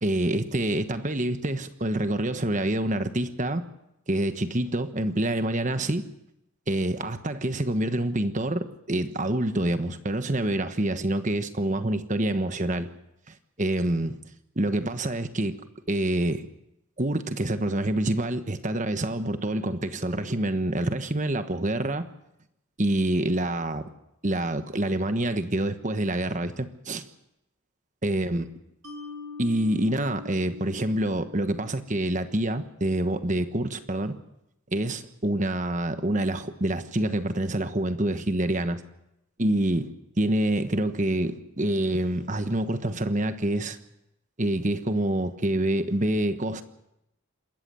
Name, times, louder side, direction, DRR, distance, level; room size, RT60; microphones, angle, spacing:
voice 1, 0.0-3.7 4.1-6.1 6.7-12.9 13.3-14.1 14.6-15.6 15.9-16.5 17.0-22.1 22.8-23.9 24.2-27.0 28.0-28.4 29.4-34.2 34.7-38.8 39.4-39.9 40.2-43.8 44.4-46.6, right 1 dB, 35° right, 1.2 m, -26 dB
Mallet percussion, 28.8-32.1, left 4 dB, 80° right, 4.3 m, -43 dB
27.0 x 13.5 x 7.7 m
head